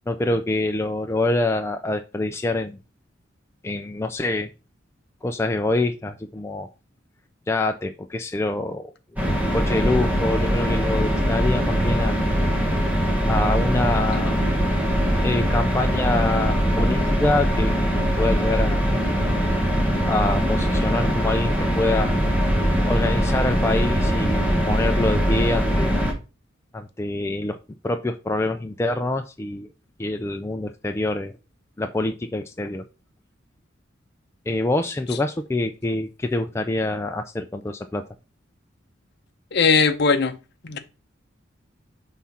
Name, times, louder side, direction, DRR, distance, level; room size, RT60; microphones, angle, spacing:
voice 1, 0.1-2.8 3.6-4.5 5.2-6.7 7.5-12.2 13.2-14.4 15.2-17.9 18.2-18.8 20.1-22.1 22.8-26.0 26.7-27.6 27.8-29.7 30.0-31.3 31.8-32.9 34.5-38.0, left 2 dB, 15° left, 0.3 m, -26 dB
sound 1, 9.2-26.1, equal, 10° right, 1.3 m, -22 dB
voice 2, 39.5-40.4 40.6-40.8, left 5 dB, 55° left, 0.7 m, -19 dB
5.6 x 3.6 x 5.7 m
head